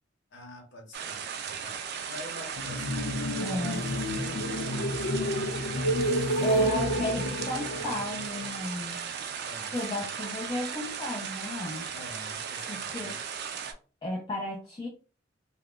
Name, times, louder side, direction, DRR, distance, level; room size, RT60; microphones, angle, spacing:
voice 1, 0.3-3.1 3.7-6.1 6.6-8.2 9.4-10.1 11.9-13.2, left 1 dB, 65° left, 1 dB, 0.9 m, -47 dB
sound 1, 0.9-13.7, right 7 dB, 60° right, 0.4 m, -37 dB
sound 2, 2.6-8.5, equal, 80° left, 0.4 m, -30 dB
voice 2, 3.4-3.9 6.4-9.1 9.7-11.9 12.7-13.2 14.0-14.9, left 1 dB, 25° left, -2 dB, 0.4 m, -34 dB
2.3 x 2.1 x 3.6 m, 0.37 s
head